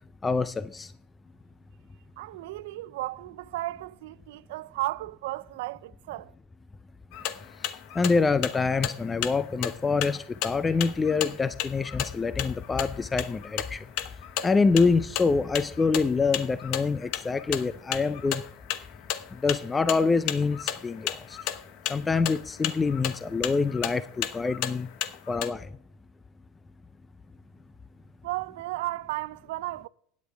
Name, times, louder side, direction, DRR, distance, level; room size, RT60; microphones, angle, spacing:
voice 1, 0.2-0.9 8.0-13.8 14.4-18.4 19.4-21.4 21.9-24.9 25.3-25.7, left 4 dB, 20° left, 0.5 m, -26 dB
voice 2, 2.2-6.3 28.2-29.9, right 18 dB, 75° right, 0.4 m, -34 dB
sound 1, 7.1-25.5, left 12 dB, 60° left, 0.9 m, -35 dB
16.0 x 9.6 x 3.4 m
supercardioid pair, 100°, 0 cm